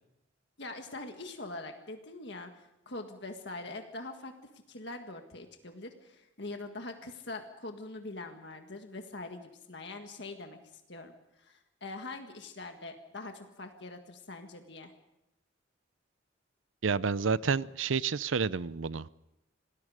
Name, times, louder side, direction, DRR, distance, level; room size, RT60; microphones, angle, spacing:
voice 1, 0.6-4.3 4.7-10.6 10.9-14.9, left 2 dB, 60° left, 4 dB, 1.8 m, -43 dB
voice 2, 16.8-19.2, right 5 dB, 80° right, 18 dB, 0.6 m, -30 dB
27.5 x 19.0 x 5.0 m, 0.89 s
head